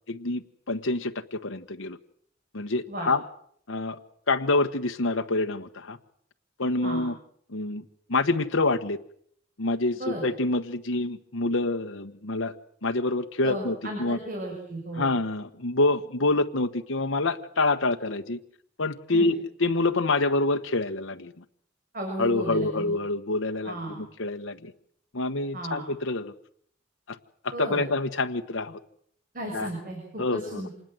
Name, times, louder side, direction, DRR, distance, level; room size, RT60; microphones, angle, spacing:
voice 1, 0.1-2.0 2.5-3.2 3.7-4.0 4.3-6.0 6.6-7.2 7.5-7.8 8.1-9.0 9.6-12.5 12.8-14.2 15.0-18.4 18.8-21.4 22.2-24.7 25.1-26.3 27.1-27.2 27.6-28.8 29.5-29.7 30.2-30.7, left 2 dB, 90° left, 6 dB, 1.4 m, -27 dB
voice 2, 9.9-10.2 13.4-15.1 19.1-19.3 21.9-22.9 23.6-24.0 25.5-25.8 27.5-27.8 29.3-30.7, right 1 dB, 45° right, 2 dB, 6.7 m, -34 dB
27.0 x 20.0 x 7.9 m, 0.65 s
head